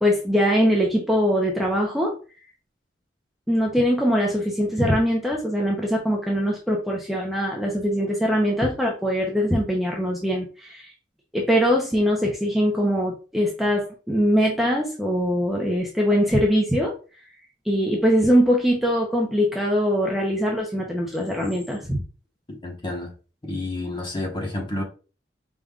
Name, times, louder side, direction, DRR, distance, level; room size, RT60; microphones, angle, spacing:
voice 1, 0.0-2.2 3.5-10.9 11.3-16.9 17.6-22.0, equal, ahead, 0.7 m, -22 dB
voice 2, 22.6-23.1 23.4-24.8, left 2 dB, 25° left, 1.2 m, -29 dB
5.1 x 3.5 x 2.3 m
head